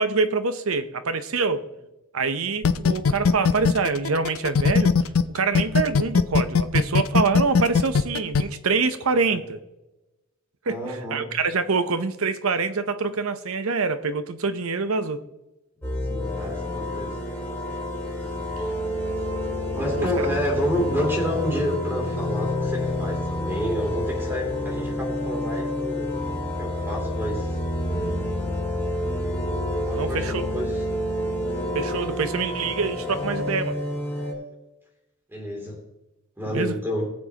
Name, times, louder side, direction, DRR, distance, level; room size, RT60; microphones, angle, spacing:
voice 1, 0.0-1.6 2.1-4.9 5.3-9.6 10.7-10.8 11.1-15.2 30.0-30.4 31.7-33.8 36.5-36.8, right 4 dB, 85° right, 11 dB, 0.8 m, -25 dB
sound 1, 2.6-5.2 5.5-8.4, left 5 dB, 80° left, 0.6 m, -18 dB
voice 2, 10.7-11.3 16.1-17.2 19.7-26.2 26.4-27.6 29.8-30.8 35.3-35.8 36.4-37.1, equal, 10° right, 0 dB, 3.0 m, -29 dB
sound 2, 15.8-34.3, left 1 dB, 10° left, 2.4 m, -28 dB
19.5 x 7.2 x 3.0 m, 1.0 s
head